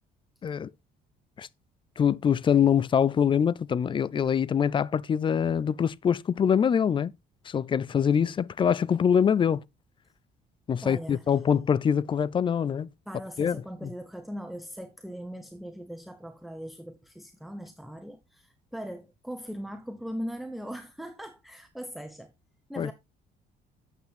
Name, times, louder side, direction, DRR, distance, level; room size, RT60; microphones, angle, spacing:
voice 1, 2.0-7.1 7.5-9.6 10.7-12.9 13.4-13.6 13.8-13.9 22.8-22.9, left 8 dB, 30° left, 0.4 m, -24 dB
voice 2, 10.8-11.3 13.1-22.3 22.7-22.9, equal, ahead, 0.8 m, -40 dB
9.1 x 8.0 x 3.4 m
cardioid pair, 110°, 17 cm